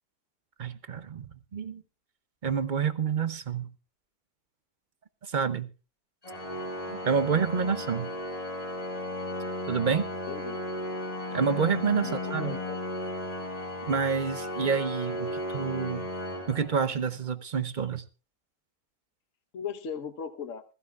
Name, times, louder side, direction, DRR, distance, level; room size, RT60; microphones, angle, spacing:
voice 1, 0.6-1.8 2.4-3.7 5.2-5.7 6.9-8.1 9.7-10.1 11.3-12.6 13.9-16.1 16.5-18.0, right 6 dB, 45° right, 0.6 m, -28 dB
Organ, 6.2-17.2, left 1 dB, 25° left, 2.2 m, -35 dB
voice 2, 10.3-10.6 12.0-12.8 19.5-20.6, left 7 dB, 55° left, 1.4 m, -37 dB
20.5 x 15.5 x 2.4 m
omnidirectional pair, 1.7 m